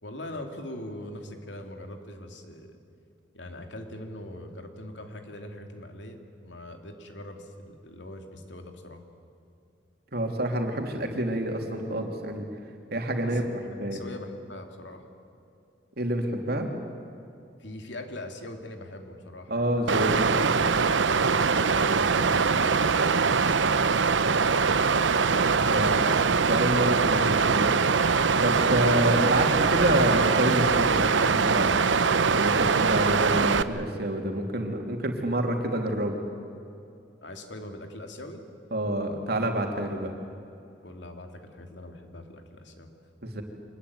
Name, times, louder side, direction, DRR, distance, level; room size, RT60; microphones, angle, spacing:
voice 1, 0.0-2.8 3.3-9.0 13.2-13.5 13.7-15.0 17.6-19.7 21.6-23.9 26.8-27.0 37.2-38.4 39.7-39.9 40.8-43.1, left 1 dB, 75° left, 5 dB, 2.8 m, -42 dB
voice 2, 10.1-12.5 12.9-13.4 13.8-14.0 16.0-16.7 19.5-20.4 25.5-26.0 26.4-27.8 28.4-31.8 32.4-36.2 38.7-40.1 43.2-43.4, right 1 dB, 60° right, 3 dB, 3.2 m, -28 dB
Water, 19.9-33.6, right 5 dB, 90° right, 0.8 m, -22 dB
25.5 x 20.5 x 9.7 m, 2.6 s
head